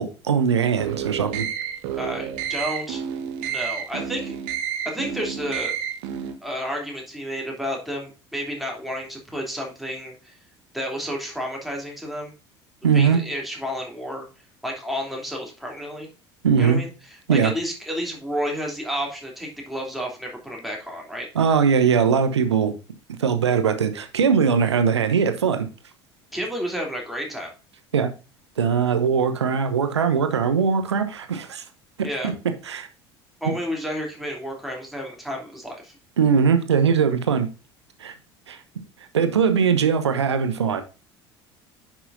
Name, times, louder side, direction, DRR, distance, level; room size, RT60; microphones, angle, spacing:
voice 1, 0.0-1.5 12.8-13.2 16.4-16.8 17.3-17.5 21.3-22.7 23.2-25.7 27.9-28.1 28.6-31.6 32.0-32.3 32.7-32.9 33.5-33.6 36.2-37.5 38.0-38.1 38.5-38.6 39.1-40.8, right 6 dB, 75° right, 0.9 m, -20 dB
sound 1, 0.8-6.3, right 9 dB, 55° right, 1.1 m, -30 dB
voice 2, 2.0-3.0 3.4-4.4 4.8-5.7 6.4-10.3 10.7-12.3 12.9-14.2 14.6-16.1 16.6-21.3 26.3-27.5 32.0-32.3 33.4-36.0, equal, ahead, 3.0 m, -31 dB
9.9 x 6.1 x 2.6 m
figure-of-eight pair, 65°, 14 cm